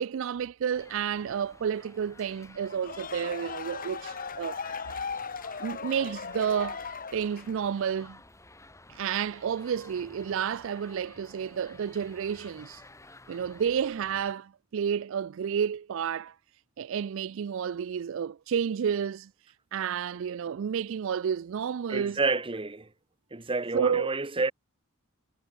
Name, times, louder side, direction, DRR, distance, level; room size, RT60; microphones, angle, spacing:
voice 1, 0.0-4.6 5.6-8.2 8.9-12.8 13.3-16.4 16.8-19.3 19.7-22.2 23.7-24.1, right 7 dB, 65° right, 0.4 m, -31 dB
sound 1, 0.7-14.3, left 2 dB, 15° left, 7.5 m, -52 dB
sound 2, 2.6-7.7, left 5 dB, 45° left, 1.5 m, -38 dB
voice 2, 21.9-22.9 23.3-24.5, right 3 dB, 25° right, 1.2 m, -29 dB
head